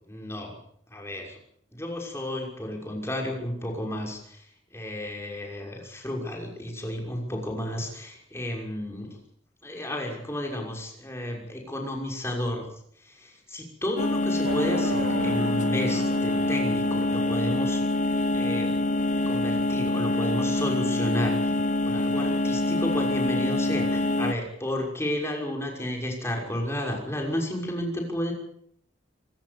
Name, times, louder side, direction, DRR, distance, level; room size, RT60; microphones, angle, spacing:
voice 1, 0.1-0.6 0.9-1.4 1.7-4.5 4.7-9.2 9.6-12.7 13.0-17.8 18.3-18.7 19.3-21.5 21.8-28.3, left 1 dB, 15° left, 1 dB, 6.0 m, -32 dB
sound 1, 14.0-24.3, left 2 dB, 40° left, 0.9 m, -25 dB
sound 2, 14.4-18.5, right 1 dB, 65° right, 2.9 m, -37 dB
26.5 x 18.5 x 7.1 m, 0.66 s
head